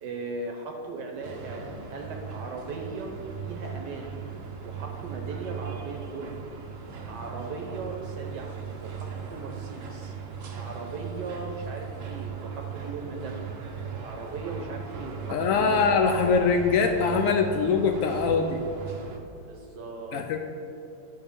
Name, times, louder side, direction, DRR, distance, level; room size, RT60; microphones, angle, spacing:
voice 1, 0.0-3.1 3.4-4.2 4.6-6.3 7.1-10.1 10.6-13.5 14.0-15.8 19.5-20.4, right 3 dB, 70° right, 2 dB, 1.3 m, -38 dB
sound 1, 1.2-19.2, right 6 dB, 55° right, 1.0 m, -38 dB
voice 2, 15.3-18.6 20.1-20.4, left 5 dB, 85° left, 5 dB, 0.7 m, -23 dB
11.0 x 5.7 x 3.6 m, 2.9 s
omnidirectional pair, 2.0 m